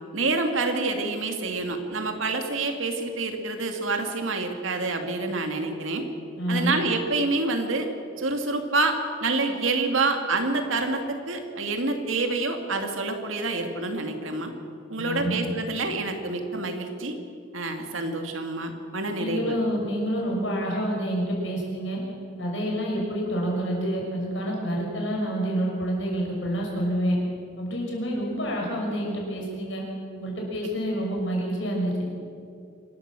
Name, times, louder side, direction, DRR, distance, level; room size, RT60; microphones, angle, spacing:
voice 1, 0.1-6.1 6.5-7.9 8.2-14.5 14.9-17.2 17.5-19.6, right 3 dB, 80° right, 5 dB, 2.3 m, -27 dB
voice 2, 6.4-6.7 15.0-15.4 19.2-22.0 22.4-27.2 27.6-29.8 30.2-32.0, equal, 65° left, -1 dB, 6.0 m, -28 dB
26.0 x 13.0 x 7.6 m, 2.5 s
head